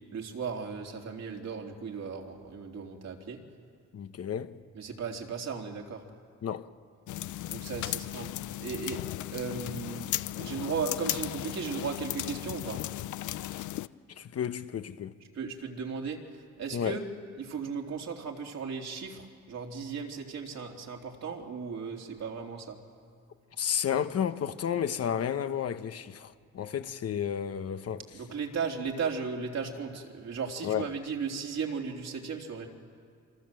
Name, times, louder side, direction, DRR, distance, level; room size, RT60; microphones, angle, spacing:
voice 1, 0.1-3.4 4.7-6.0 7.5-8.3 8.6-9.0 9.3-10.1 10.4-12.8 15.3-17.1 17.4-22.8 28.1-32.7, right 5 dB, 60° right, 3.7 m, -36 dB
voice 2, 3.9-4.6 6.4-6.7 14.2-15.1 16.7-17.0 23.6-28.0 30.6-30.9, left 8 dB, 55° left, 1.2 m, -32 dB
sound 1, 7.1-13.9, left 14 dB, 75° left, 0.7 m, -36 dB
26.5 x 25.5 x 7.8 m
cardioid pair, 90°, 30 cm